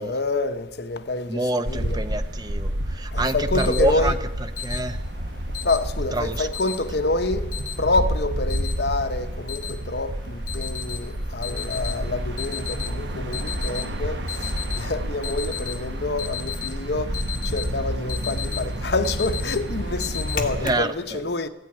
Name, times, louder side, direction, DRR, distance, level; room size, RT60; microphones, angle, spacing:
voice 1, 0.0-2.0 3.1-4.2 5.6-14.2 14.7-17.2 17.4-21.5, left 2 dB, 65° left, 0.8 m, -27 dB
voice 2, 1.3-2.7 3.0-4.1 4.6-5.0 6.1-6.5 20.6-20.9, right 1 dB, 20° right, 0.7 m, -26 dB
sound 1, 1.7-20.7, right 1 dB, 75° right, 1.0 m, -30 dB
Alarm, 3.3-20.9, left 7 dB, 45° left, 1.8 m, -37 dB
15.5 x 9.2 x 10.0 m
head